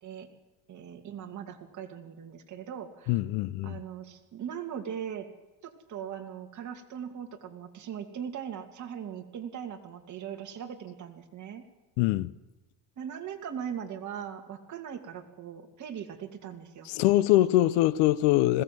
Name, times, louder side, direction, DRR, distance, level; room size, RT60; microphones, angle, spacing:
voice 1, 0.7-3.2 3.6-5.3 5.6-11.6 13.0-17.3 17.6-17.8 18.5-18.6, right 8 dB, 35° right, 2.5 m, -40 dB
voice 2, 3.1-3.8 12.0-12.3 16.9-18.6, left 16 dB, 65° left, 0.8 m, -23 dB
20.5 x 17.0 x 7.7 m
supercardioid pair, 130°, 48 cm